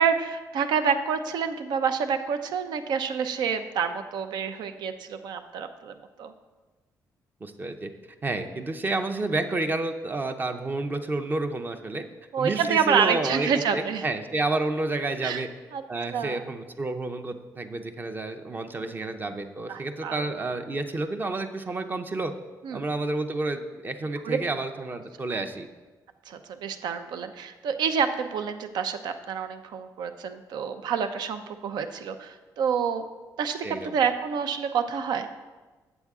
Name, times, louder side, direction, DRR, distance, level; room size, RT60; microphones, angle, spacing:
voice 1, 0.0-6.3 12.3-14.0 15.2-15.4 15.7-15.8 16.1-16.4 19.7-20.3 22.6-22.8 24.2-24.4 26.3-33.1 33.4-35.3, right 6 dB, 80° right, 9 dB, 0.6 m, -28 dB
voice 2, 7.4-7.9 8.2-12.0 12.4-15.5 15.9-22.3 22.7-25.7 33.6-33.9, right 2 dB, 25° right, 6 dB, 0.6 m, -30 dB
8.0 x 7.3 x 3.6 m, 1.3 s
cardioid pair, 105°, 7 cm